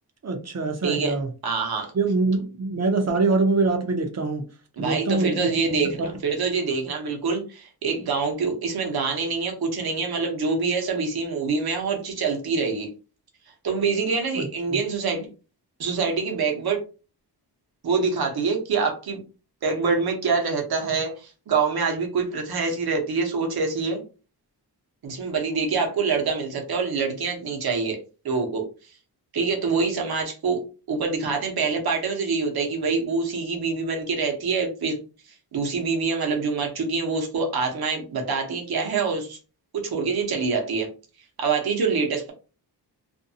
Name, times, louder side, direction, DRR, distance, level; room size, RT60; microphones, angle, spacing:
voice 1, 0.2-1.3 1.9-4.4 4.8-6.1 14.3-14.8, right 3 dB, 40° right, 5 dB, 0.7 m, -24 dB
voice 2, 0.8-1.2 1.4-1.9 4.8-12.9 13.6-15.3 15.8-16.8 17.8-19.2 19.6-24.0 25.0-28.0 28.2-28.6 29.3-30.6 30.9-35.0 35.5-39.4 39.8-40.9 41.4-42.3, right 4 dB, 65° right, 2 dB, 0.9 m, -25 dB
2.6 x 2.2 x 2.7 m, 0.34 s
wide cardioid pair, 105°, 40 cm